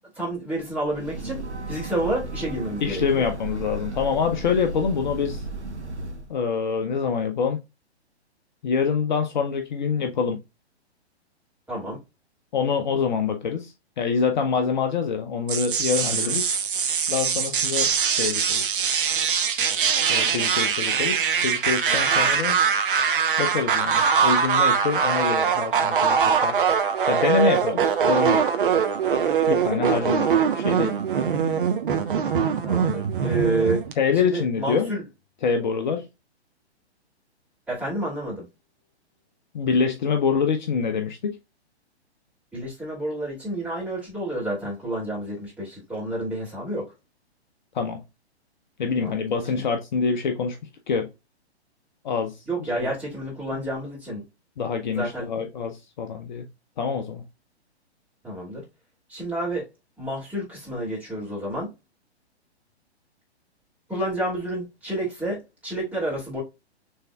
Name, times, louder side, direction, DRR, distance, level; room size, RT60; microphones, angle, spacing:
voice 1, 0.2-1.4 1.7-3.3 11.7-12.0 16.2-16.4 32.6-33.8 34.2-35.0 37.7-38.4 42.5-46.8 49.0-49.1 49.5-49.6 52.5-54.2 54.9-55.3 58.2-58.6 59.1-59.6 60.0-61.7 63.9-66.4, right 1 dB, 5° right, 2.6 m, -29 dB
Breathing / Train, 0.8-6.4, right 2 dB, 85° right, 0.9 m, -35 dB
voice 2, 2.8-5.4 6.3-7.6 8.6-10.4 12.5-16.5 17.1-18.6 20.1-22.6 23.4-26.5 27.1-28.5 29.5-31.0 34.0-34.9 35.4-36.1 39.5-41.4 47.7-48.0 48.8-50.6 50.9-51.1 52.0-52.4 52.7-52.9 54.6-56.5 56.8-57.2, left 6 dB, 45° left, 0.7 m, -25 dB
sound 1, 15.5-33.9, right 6 dB, 50° right, 1.0 m, -22 dB
6.6 x 3.5 x 2.3 m
figure-of-eight pair, 120°, 33 cm